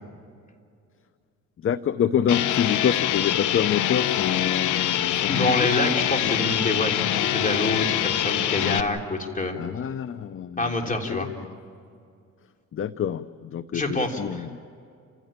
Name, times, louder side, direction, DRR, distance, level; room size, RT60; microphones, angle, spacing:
voice 1, 1.6-5.7 6.2-6.3 9.5-11.5 12.7-14.6, left 8 dB, 45° left, 14 dB, 0.7 m, -27 dB
sound 1, 2.3-8.8, left 12 dB, 80° left, 1.0 m, -24 dB
voice 2, 5.3-9.6 10.6-11.3 13.7-14.5, left 2 dB, 25° left, 2 dB, 3.5 m, -26 dB
29.0 x 16.0 x 8.8 m, 2.3 s
cardioid pair, 90°, 30 cm